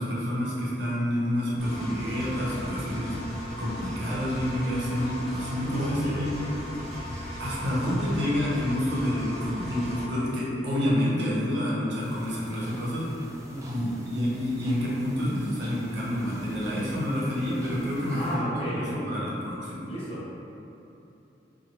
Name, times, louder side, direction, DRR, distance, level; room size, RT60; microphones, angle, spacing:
voice 1, 0.0-6.5 7.4-13.2 13.7-19.9, equal, 75° right, -6 dB, 0.7 m, -28 dB
Engine, 1.6-10.0, equal, ahead, 1.4 m, -37 dB
voice 2, 5.7-6.3 13.5-14.0 18.1-19.3 19.9-20.3, equal, 30° left, -9 dB, 0.8 m, -34 dB
sound 1, 12.0-18.4, equal, 20° right, 0.3 m, -44 dB
3.0 x 2.3 x 2.8 m, 2.9 s
head